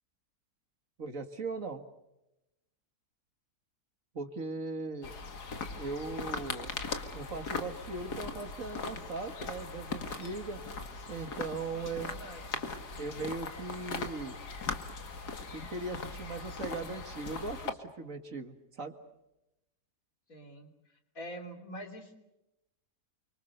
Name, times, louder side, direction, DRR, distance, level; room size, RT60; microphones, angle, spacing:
voice 1, 1.0-1.8 4.1-5.1 5.7-6.8 7.1-10.6 11.1-12.1 13.0-14.4 15.5-19.0, right 3 dB, 55° right, 7 dB, 2.3 m, -39 dB
sound 1, 5.0-17.7, left 4 dB, 80° left, 2.5 m, -39 dB
voice 2, 11.7-12.6 20.3-22.1, equal, 60° left, 4 dB, 3.8 m, -46 dB
29.0 x 25.0 x 6.7 m, 0.92 s
omnidirectional pair, 1.7 m